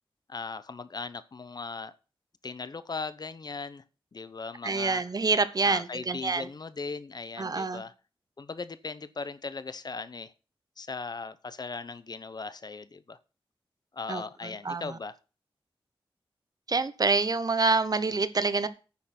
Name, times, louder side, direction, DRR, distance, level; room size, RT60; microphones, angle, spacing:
voice 1, 0.3-1.9 2.4-3.8 4.1-5.0 5.6-7.9 8.4-10.3 10.8-13.2 13.9-15.2, left 4 dB, 45° left, 0.7 m, -38 dB
voice 2, 4.6-6.5 7.4-7.8 14.1-14.2 14.6-15.0 16.7-18.7, right 4 dB, 45° right, 0.9 m, -26 dB
9.7 x 6.6 x 5.9 m
wide cardioid pair, 105°, 9 cm